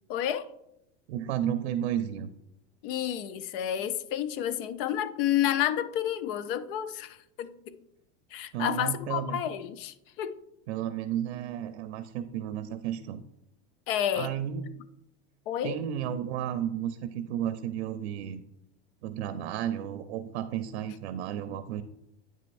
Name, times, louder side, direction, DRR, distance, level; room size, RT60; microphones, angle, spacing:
voice 1, 0.1-0.5 2.8-7.8 8.3-10.4 13.9-14.3 15.5-15.8, left 11 dB, 60° left, 0.5 m, -30 dB
voice 2, 1.1-2.3 8.5-9.4 10.7-13.2 14.1-14.6 15.6-18.4 19.0-21.8, right 10 dB, 85° right, 0.6 m, -32 dB
8.8 x 6.3 x 2.6 m
supercardioid pair, 170°, 32 cm